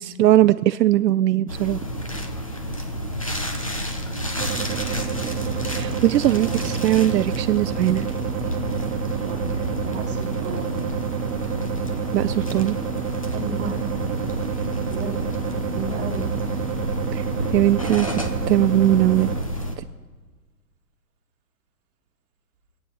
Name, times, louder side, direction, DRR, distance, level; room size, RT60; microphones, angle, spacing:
voice 1, 0.0-1.8 5.8-8.1 12.1-12.8 17.1-17.3 17.5-18.2 18.5-19.3 19.8-19.9, right 13 dB, 80° right, 13 dB, 0.5 m, -20 dB
sound 1, 1.5-19.8, equal, 25° left, 0.4 m, -30 dB
sound 2, 4.4-19.4, right 7 dB, 50° right, 1.3 m, -29 dB
voice 2, 6.3-7.0 9.2-9.4 9.8-10.8 13.3-13.8 14.9-15.2 15.5-16.4, right 3 dB, 35° right, 0 dB, 2.2 m, -34 dB
24.5 x 8.7 x 3.9 m, 1.5 s
hypercardioid pair, 150°, 49 cm